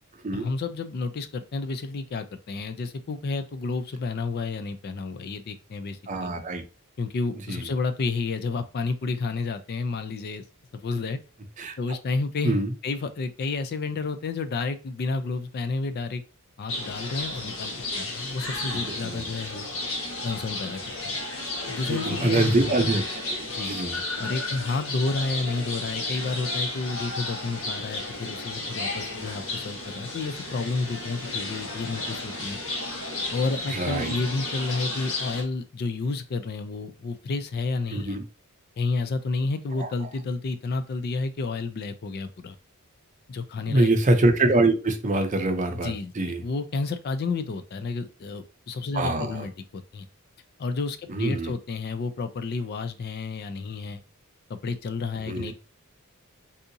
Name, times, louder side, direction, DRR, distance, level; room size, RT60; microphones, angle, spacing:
voice 1, 0.3-6.3 7.0-10.4 10.7-11.2 11.8-16.2 16.6-19.7 20.2-21.1 21.7-22.7 23.6-23.8 24.2-32.6 33.3-38.2 38.8-42.6 43.3-43.9 45.7-50.1 50.6-54.0 54.5-55.5, left 3 dB, 45° left, 9 dB, 0.4 m, -31 dB
voice 2, 6.1-6.6 7.5-7.6 11.6-11.7 12.4-12.7 18.9-19.3 21.9-23.0 23.3-24.0 33.7-34.1 37.9-38.2 39.8-39.9 43.7-46.4 48.9-49.5 51.1-51.5 55.3-55.5, right 2 dB, 35° right, 6 dB, 0.5 m, -24 dB
sound 1, 16.7-35.4, left 2 dB, 65° left, 1.2 m, -33 dB
3.6 x 2.7 x 2.6 m, 0.32 s
head